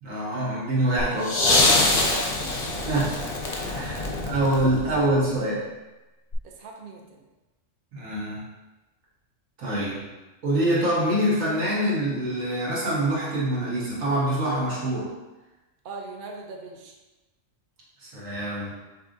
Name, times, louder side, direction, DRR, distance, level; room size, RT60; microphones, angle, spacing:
voice 1, 0.0-1.6 2.9-3.3 3.6-5.6 7.9-8.5 9.6-10.0 10.4-15.1 18.0-18.7, right 1 dB, 85° right, -6 dB, 1.7 m, -25 dB
sound 1, 1.0-5.2 6.3-6.4, left 2 dB, 45° left, 0.5 m, -24 dB
voice 2, 1.4-2.5 3.9-4.0 5.0-5.5 6.4-7.2 15.8-16.9, right 3 dB, 55° right, 1 dB, 0.6 m, -39 dB
6.6 x 2.7 x 2.6 m, 1.1 s
omnidirectional pair, 1.3 m